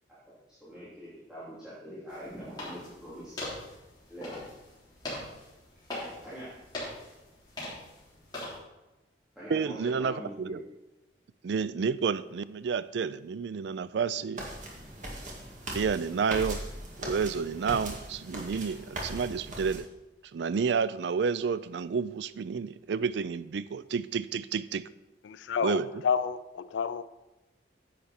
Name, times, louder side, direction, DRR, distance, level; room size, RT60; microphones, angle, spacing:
voice 1, 0.5-3.4 4.1-4.4 6.2-6.6 9.3-10.6, equal, 5° right, -12 dB, 3.1 m, -43 dB
sound 1, 2.1-8.6, left 1 dB, 25° left, 3.7 m, -42 dB
voice 2, 9.5-10.6 11.4-14.5 15.7-16.7 17.0-19.9 20.3-24.9 25.6-25.9, right 6 dB, 65° right, 16 dB, 0.4 m, -30 dB
sound 2, 14.4-19.8, right 1 dB, 45° right, 2.0 m, -39 dB
voice 3, 25.2-27.0, left 6 dB, 80° left, 13 dB, 0.4 m, -30 dB
10.0 x 8.2 x 4.3 m, 1.0 s
head